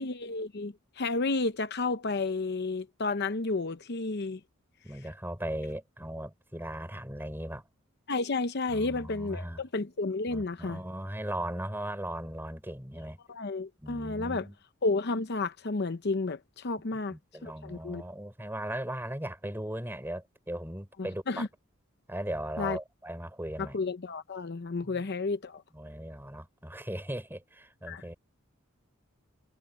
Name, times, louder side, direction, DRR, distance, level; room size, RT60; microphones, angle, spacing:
voice 1, 0.0-4.4 8.1-10.8 13.3-14.5 14.8-17.2 17.4-18.0 21.0-21.5 22.6-22.8 23.6-25.6 27.9-28.0, left 3 dB, 55° left, 0.8 m, -31 dB
voice 2, 4.8-7.6 8.7-9.6 10.3-13.2 13.8-14.6 16.9-21.4 22.1-23.8 24.8-25.0 25.7-28.2, right 1 dB, 10° right, 5.1 m, -38 dB
head